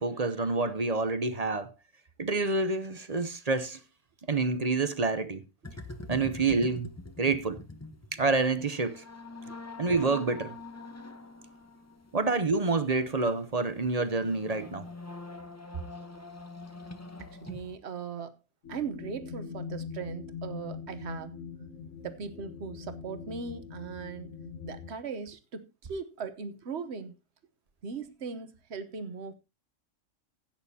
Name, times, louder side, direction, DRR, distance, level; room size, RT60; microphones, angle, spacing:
voice 1, 0.0-1.7 2.2-3.8 4.3-5.4 6.1-6.9 7.2-7.6 8.1-9.0 9.8-10.6 12.1-14.9, right 3 dB, 35° right, 0.8 m, -28 dB
sound 1, 5.6-17.8, left 3 dB, 15° left, 0.9 m, -45 dB
voice 2, 17.2-18.4 18.7-21.4 22.0-24.4 24.6-27.1 27.8-29.3, right 5 dB, 55° right, 1.3 m, -39 dB
sound 2, 18.6-24.9, left 6 dB, 75° left, 1.8 m, -42 dB
16.0 x 8.9 x 2.8 m
omnidirectional pair, 1.4 m